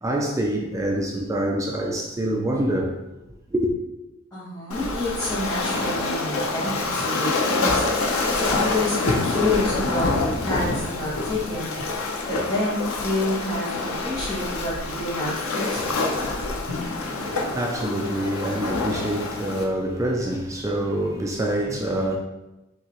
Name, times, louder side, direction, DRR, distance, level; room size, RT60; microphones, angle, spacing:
voice 1, 0.0-3.0 3.5-3.7 16.8-22.2, right 1 dB, 15° right, 0.4 m, -26 dB
voice 2, 4.3-11.7 12.2-16.1, left 2 dB, 15° left, 1.3 m, -28 dB
Waves surf, 4.7-19.6, left 3 dB, 90° left, 0.7 m, -26 dB
6.0 x 2.9 x 3.0 m
head